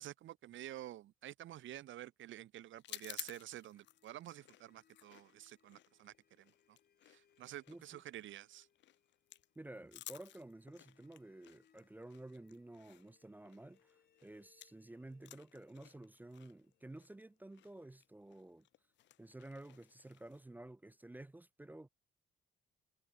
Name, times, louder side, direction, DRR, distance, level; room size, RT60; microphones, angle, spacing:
voice 1, 0.0-6.8 7.0-8.7, right 13 dB, 75° right, 1.1 m, -50 dB
sound 1, 2.8-14.9 15.1-20.4, left 14 dB, 65° left, 0.5 m, -55 dB
sound 2, 3.0-17.9, left 7 dB, 50° left, 3.7 m, -76 dB
voice 2, 7.7-8.0 9.6-18.7 19.2-21.9, right 1 dB, 10° right, 0.4 m, -52 dB
cardioid pair, 90°, 20 cm